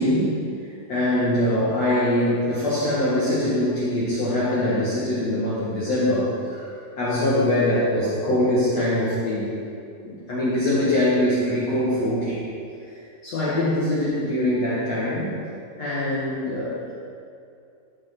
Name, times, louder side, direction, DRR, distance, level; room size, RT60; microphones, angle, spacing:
voice 1, 0.0-6.7 7.0-9.6 10.0-12.4 13.2-15.4 15.8-16.9, left 1 dB, 50° left, -9 dB, 2.7 m, -23 dB
14.0 x 6.3 x 6.1 m, 2.4 s
omnidirectional pair, 4.5 m